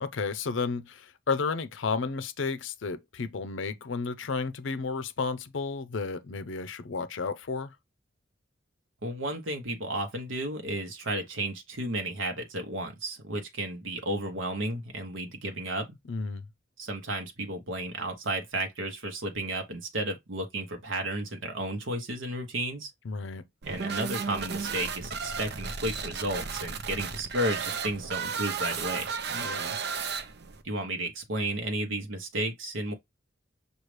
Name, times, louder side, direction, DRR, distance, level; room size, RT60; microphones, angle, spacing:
voice 1, 0.0-7.7 16.1-16.4 23.0-23.4 29.3-29.8, left 4 dB, 75° left, 0.6 m, -32 dB
voice 2, 9.0-16.0 16.8-22.9 23.6-29.1 30.6-32.9, right 1 dB, 90° right, 0.9 m, -33 dB
sound 1, 23.6-30.6, right 5 dB, 60° right, 0.6 m, -34 dB
6.2 x 2.4 x 3.2 m
head